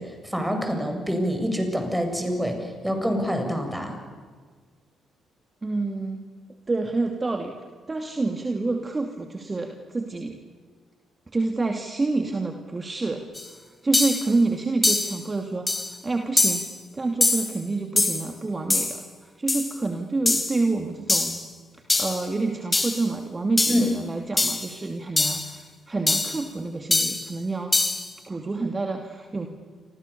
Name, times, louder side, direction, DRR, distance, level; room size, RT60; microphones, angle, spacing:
voice 1, 0.0-2.6 2.8-3.9 23.7-23.9, equal, 5° right, 4 dB, 7.5 m, -26 dB
voice 2, 5.6-6.2 6.7-7.5 7.9-10.4 11.3-16.6 16.9-21.4 22.0-27.7 28.3-29.5, right 3 dB, 25° right, 4 dB, 2.6 m, -28 dB
sound 1, 13.3-13.4 13.9-14.3 14.8-15.2 15.7-15.9 16.4-16.7 17.2-17.5 18.0-18.3 18.7-19.0 19.5-19.7 20.3-20.6 21.1-21.4 21.9-22.2 22.7-23.0 23.6-23.9 24.4-24.7 25.2-25.5 26.1-26.4 26.9-27.2 27.7-28.1, left 2 dB, 20° left, 3.7 m, -23 dB
29.5 x 25.5 x 7.1 m, 1.5 s
figure-of-eight pair, 45°, 0 cm